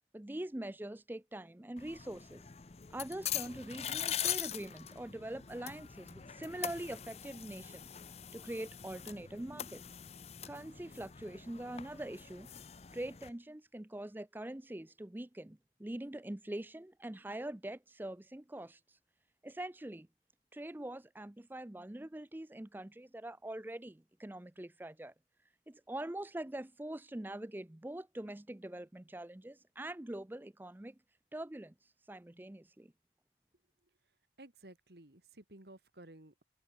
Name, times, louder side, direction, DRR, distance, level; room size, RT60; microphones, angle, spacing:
voice 1, 0.1-2.5 2.9-8.0 8.3-9.8 10.5-12.5 12.9-19.0 19.4-20.1 20.5-25.1 25.7-31.0 31.3-32.9, right 1 dB, 10° right, 0.5 m, -44 dB
sound 1, 1.8-13.3, left 10 dB, 35° left, 0.6 m, -42 dB
voice 2, 34.4-36.4, right 1 dB, 60° right, 2.3 m, -55 dB
open air
head